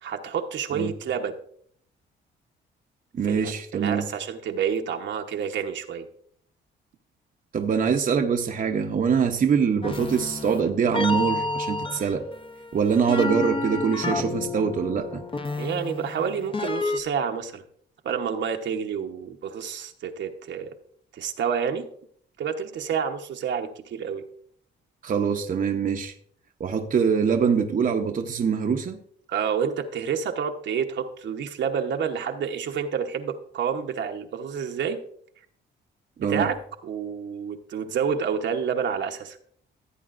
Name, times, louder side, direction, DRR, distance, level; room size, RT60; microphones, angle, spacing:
voice 1, 0.0-1.3 3.2-6.1 15.6-17.6 18.0-20.7 21.1-21.9 22.4-24.2 29.3-35.0 36.2-39.4, right 7 dB, 65° right, 5 dB, 1.0 m, -29 dB
voice 2, 3.1-4.0 7.5-12.3 12.7-15.2 25.0-26.1 26.6-29.0 36.2-36.5, right 6 dB, 45° right, 4 dB, 0.8 m, -24 dB
sound 1, 9.8-17.0, left 2 dB, 25° left, 0.8 m, -30 dB
15.5 x 8.4 x 2.5 m, 0.63 s
cardioid pair, 90°, 20 cm